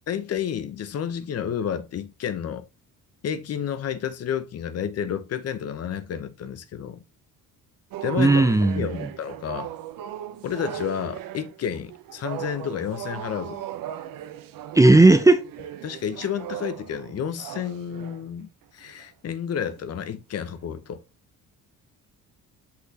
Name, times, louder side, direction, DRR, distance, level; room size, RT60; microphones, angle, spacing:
voice 1, 0.1-2.6 3.2-7.0 8.0-8.5 8.8-9.7 10.4-13.6 15.8-21.0, left 8 dB, 45° left, 0.8 m, -30 dB
sound 1, 7.9-18.3 18.8-19.0 19.6-20.0 20.3-20.6, right 11 dB, 75° right, 0.9 m, -37 dB
voice 2, 8.2-9.1 14.7-15.5, right 2 dB, 10° right, 0.6 m, -16 dB
6.0 x 5.8 x 2.8 m
cardioid pair, 140°, 34 cm